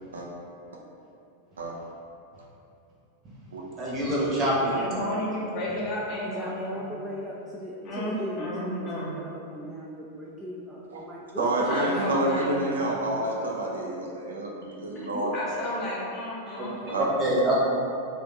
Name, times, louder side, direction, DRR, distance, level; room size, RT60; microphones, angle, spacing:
voice 1, 3.8-4.9 16.6-16.7 17.2-17.6, right 1 dB, 30° right, -5 dB, 1.0 m, -25 dB
voice 2, 4.7-7.0 7.8-9.1 11.7-12.6 14.9-17.2, left 1 dB, 35° left, -5 dB, 0.9 m, -33 dB
voice 3, 6.2-12.0 15.1-15.6, equal, 10° right, -5 dB, 0.4 m, -37 dB
voice 4, 11.4-15.6 16.9-17.1, right 1 dB, 65° right, -2 dB, 0.4 m, -28 dB
3.3 x 2.4 x 4.0 m, 2.7 s
figure-of-eight pair, 90°, 0 cm